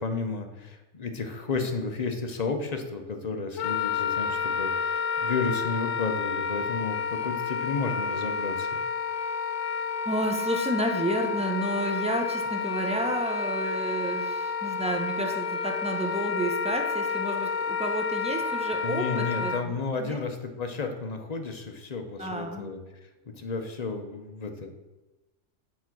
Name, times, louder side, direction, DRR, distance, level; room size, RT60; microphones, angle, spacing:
voice 1, 0.0-8.8 18.8-22.8 23.4-24.7, left 4 dB, 40° left, 5 dB, 0.7 m, -32 dB
Wind instrument woodwind instrument, 3.6-19.6, left 5 dB, 70° left, 1.0 m, -30 dB
voice 2, 10.1-19.7 20.0-20.2 22.2-22.7, right 1 dB, 5° right, 3 dB, 0.5 m, -31 dB
7.1 x 4.3 x 6.0 m, 1.1 s
omnidirectional pair, 1.4 m